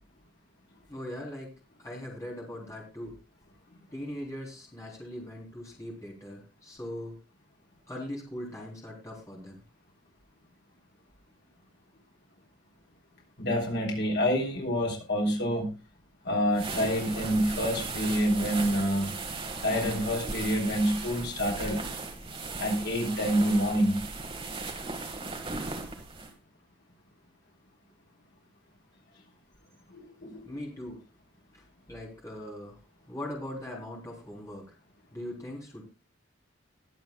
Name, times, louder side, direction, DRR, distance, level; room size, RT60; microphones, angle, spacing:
voice 1, 0.9-1.5 1.8-3.2 3.9-7.2 7.9-9.6 30.5-31.0 31.5-32.8 33.1-34.7 35.1-35.8, left 1 dB, 15° left, -2 dB, 3.6 m, -40 dB
voice 2, 13.4-15.7 16.2-19.1 19.6-21.8 22.6-24.0 29.9-30.5, equal, 55° left, 0 dB, 3.4 m, -27 dB
sound 1, 16.5-26.3, right 3 dB, 25° right, 1.6 m, -37 dB
21.5 x 7.5 x 2.3 m, 0.31 s
head